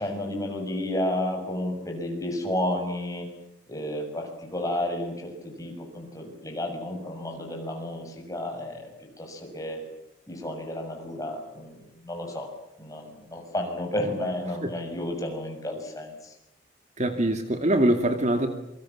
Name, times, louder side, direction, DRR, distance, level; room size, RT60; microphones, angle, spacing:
voice 1, 0.0-3.3 3.7-8.9 9.2-9.8 10.3-12.5 12.8-16.3, left 1 dB, 20° left, 2 dB, 7.0 m, -32 dB
voice 2, 17.0-18.5, right 1 dB, 40° right, 6 dB, 2.3 m, -23 dB
27.5 x 25.0 x 7.5 m, 0.81 s
head